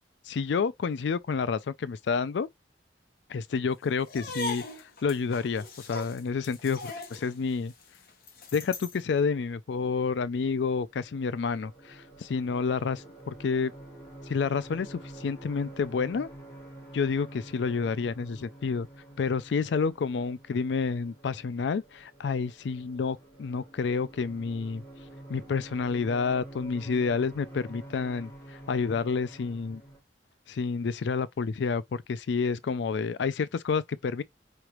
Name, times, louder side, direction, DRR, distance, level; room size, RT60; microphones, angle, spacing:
voice 1, 0.3-2.5 3.3-7.7 8.5-13.7 14.3-16.3 16.9-18.9 19.2-24.8 25.3-29.8 30.5-34.2, left 5 dB, 80° left, 0.4 m, -29 dB
sound 1, 4.0-9.0, left 2 dB, 55° left, 1.0 m, -40 dB
sound 2, 10.5-30.0, right 1 dB, 20° left, 2.8 m, -48 dB
4.9 x 3.2 x 3.0 m
head